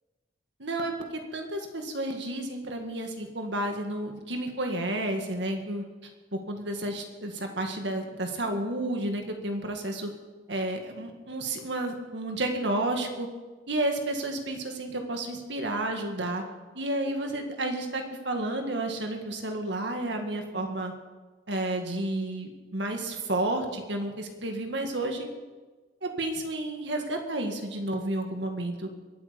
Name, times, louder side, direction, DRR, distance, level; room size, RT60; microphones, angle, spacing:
voice 1, 0.6-5.8 6.3-10.1 10.5-13.3 13.7-16.4 16.7-20.9 21.5-25.3 26.0-28.9, right 1 dB, 65° right, 4 dB, 1.9 m, -31 dB
23.0 x 8.7 x 5.2 m, 1.3 s
head